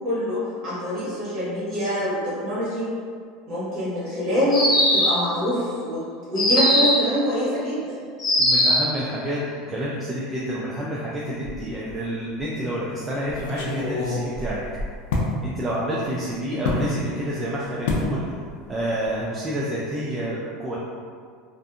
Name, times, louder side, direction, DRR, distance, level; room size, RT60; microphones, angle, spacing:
voice 1, 0.0-2.9 3.5-6.0 6.3-8.0, equal, 40° right, -10 dB, 1.3 m, -25 dB
sound 1, 4.5-5.3 6.4-7.1 8.2-8.9, left 1 dB, 25° left, 0.8 m, -19 dB
voice 2, 8.4-9.4 9.7-14.6 15.4-18.3 18.7-20.8, right 1 dB, 15° right, -6 dB, 0.3 m, -28 dB
sound 2, 11.4-12.0 12.4-12.5 13.3-15.3 16.6-16.9 17.9-18.1 18.5-18.8 19.0-19.2, left 3 dB, 80° left, 0.4 m, -27 dB
2.6 x 2.5 x 2.3 m, 2.1 s
supercardioid pair, 145°, 0 cm